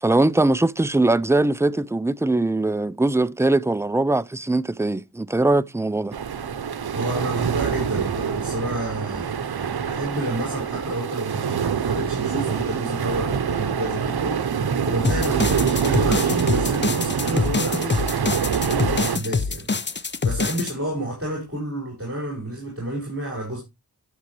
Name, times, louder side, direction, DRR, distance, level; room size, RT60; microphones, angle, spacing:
voice 1, 0.0-6.1, right 2 dB, 5° right, 0.4 m, -21 dB
sound 1, 6.1-19.2, right 7 dB, 75° right, 0.9 m, -25 dB
voice 2, 6.9-23.6, right 1 dB, 35° right, 4.9 m, -30 dB
sound 2, 15.0-20.7, left 4 dB, 30° left, 0.7 m, -25 dB
11.0 x 7.2 x 3.1 m
cardioid pair, 55°, 38 cm